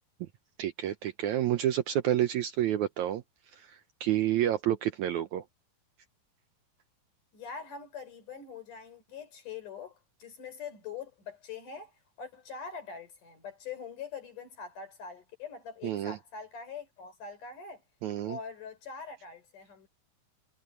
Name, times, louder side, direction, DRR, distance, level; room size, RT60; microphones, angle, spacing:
voice 1, 0.6-3.2 3.5-5.4 15.8-16.2 18.0-18.4, right 12 dB, 85° right, 1.6 m, -29 dB
voice 2, 7.3-17.8 18.3-19.9, left 6 dB, 55° left, 5.8 m, -43 dB
omnidirectional pair, 4.4 m